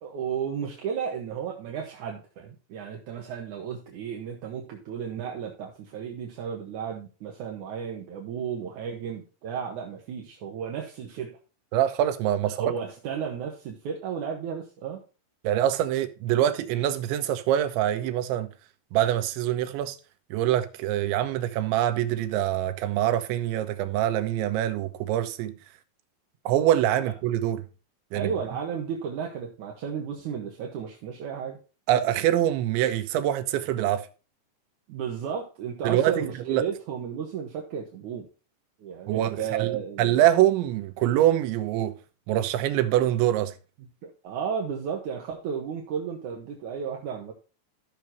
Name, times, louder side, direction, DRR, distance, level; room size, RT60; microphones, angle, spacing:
voice 1, 0.0-11.4 12.4-15.0 28.1-31.6 34.9-38.3 38.8-40.1 44.0-47.3, right 7 dB, 65° right, 2.1 m, -33 dB
voice 2, 11.7-12.7 15.4-18.5 18.9-20.0 20.3-25.6 26.5-27.7 28.1-28.3 31.9-34.1 35.8-36.6 39.1-42.0 42.3-43.5, right 12 dB, 90° right, 3.2 m, -24 dB
13.5 x 6.5 x 3.0 m
omnidirectional pair, 5.3 m